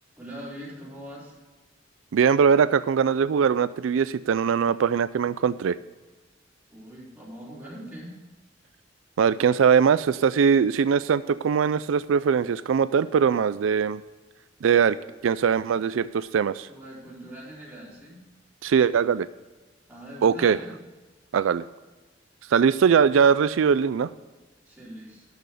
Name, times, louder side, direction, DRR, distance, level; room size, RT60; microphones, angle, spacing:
voice 1, 0.2-1.3 6.7-8.2 16.7-18.2 19.9-20.7 24.7-25.3, equal, 10° right, -6 dB, 4.0 m, -42 dB
voice 2, 2.1-5.8 9.2-14.0 14.6-15.0 15.2-16.7 18.6-19.3 20.2-20.6 21.3-21.6 22.5-24.1, right 7 dB, 85° right, 15 dB, 0.4 m, -21 dB
12.0 x 6.2 x 6.5 m, 1.2 s
head